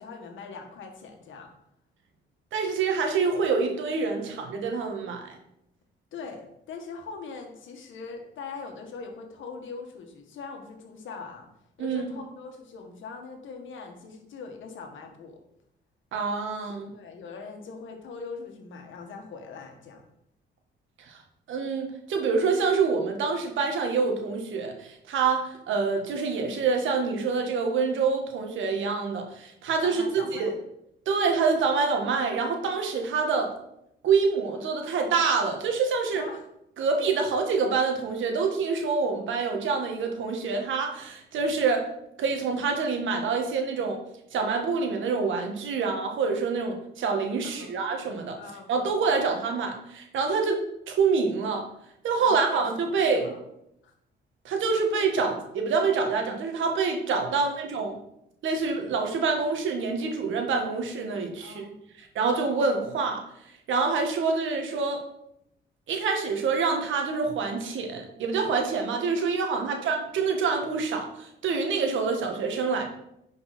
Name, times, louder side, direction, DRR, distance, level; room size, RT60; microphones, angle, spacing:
voice 1, 0.0-1.5 6.1-11.5 11.8-15.4 16.9-20.0 29.8-30.5 36.1-36.5 47.5-47.7 48.4-48.7 52.2-53.4 53.8-53.9 61.4-61.8 69.5-69.8, left 4 dB, 75° left, 4 dB, 1.8 m, -41 dB
voice 2, 2.5-5.4 11.8-12.1 16.1-16.9 21.0-21.2 21.5-30.5 31.1-33.5 34.0-36.2 36.8-41.9 42.2-44.0 44.3-48.4 48.7-51.7 52.0-53.3 54.4-57.9 58.4-61.7 62.0-63.2 63.7-65.0 65.9-72.9, right 4 dB, 75° right, 3 dB, 1.8 m, -26 dB
10.0 x 5.3 x 4.3 m, 0.80 s
cardioid pair, 90°, 20 cm